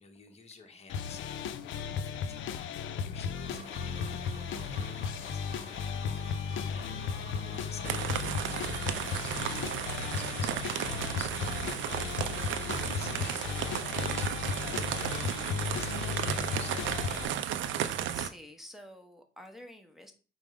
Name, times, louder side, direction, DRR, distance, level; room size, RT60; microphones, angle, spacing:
voice 1, 0.0-4.9 5.2-6.4 6.7-17.3, left 5 dB, 30° left, 3 dB, 1.0 m, -54 dB
sound 1, 0.9-17.3, left 6 dB, 75° left, 0.4 m, -35 dB
sound 2, 3.3-15.3, right 4 dB, 30° right, 1.0 m, -49 dB
sound 3, 7.8-18.3, right 10 dB, 75° right, 0.4 m, -34 dB
voice 2, 18.0-20.1, equal, ahead, 5 dB, 0.9 m, -50 dB
5.1 x 2.1 x 4.8 m, 0.37 s
cardioid pair, 90°, 20 cm